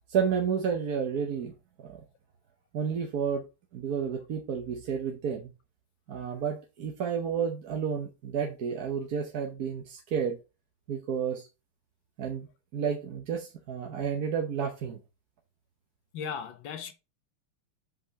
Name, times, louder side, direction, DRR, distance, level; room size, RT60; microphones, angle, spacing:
voice 1, 0.1-1.5 1.8-2.0 2.7-3.5 3.7-5.5 6.1-10.4 10.9-11.4 12.2-12.5 12.7-15.0, right 7 dB, 55° right, 1.3 m, -31 dB
voice 2, 16.1-16.9, left 7 dB, 70° left, 1.5 m, -36 dB
8.0 x 5.5 x 2.8 m
omnidirectional pair, 2.4 m